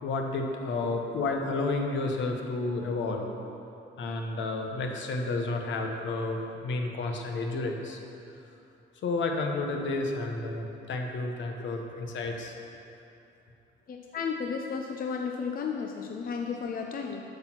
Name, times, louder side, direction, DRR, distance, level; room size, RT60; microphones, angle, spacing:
voice 1, 0.0-3.3 4.0-8.0 9.0-12.5, left 3 dB, 70° left, 2 dB, 1.1 m, -31 dB
voice 2, 13.9-17.2, left 6 dB, 45° left, 2 dB, 0.7 m, -33 dB
8.4 x 6.1 x 6.0 m, 2.8 s
cardioid pair, 90°, 20 cm